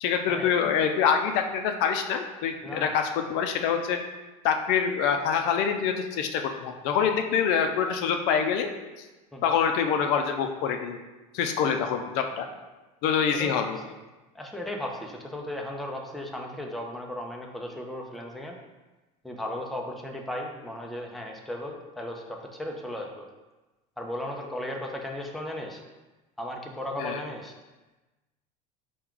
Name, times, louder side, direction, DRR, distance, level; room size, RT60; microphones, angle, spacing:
voice 1, 0.0-4.0 4.4-8.7 9.0-9.1 9.4-11.0 11.3-12.5 13.0-13.8 27.0-27.2, left 7 dB, 65° left, 5 dB, 0.4 m, -25 dB
voice 2, 2.6-2.9 9.3-9.5 13.3-13.5 13.9-14.0 14.3-18.6 19.2-23.3 24.0-25.8 26.4-27.5, left 1 dB, ahead, 0 dB, 0.5 m, -36 dB
4.5 x 2.3 x 3.6 m, 1.1 s
supercardioid pair, 100°, 18 cm